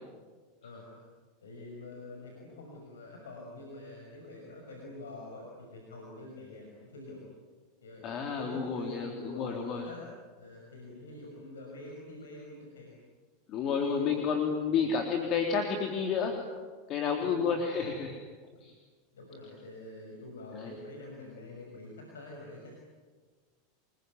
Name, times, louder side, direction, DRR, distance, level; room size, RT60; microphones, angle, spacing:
voice 1, 0.6-1.0 1.4-7.3 7.8-8.0 8.3-10.0 10.4-12.9 13.7-14.9 17.0-17.4 18.6-18.7 19.1-22.7, left 2 dB, 90° left, 0 dB, 6.0 m, -46 dB
voice 2, 8.0-9.8 13.5-16.3 16.9-18.2 18.6-18.7 20.5-20.7, left 6 dB, 45° left, 3 dB, 3.6 m, -30 dB
27.0 x 22.0 x 9.6 m, 1.4 s
hypercardioid pair, 100°, 0 cm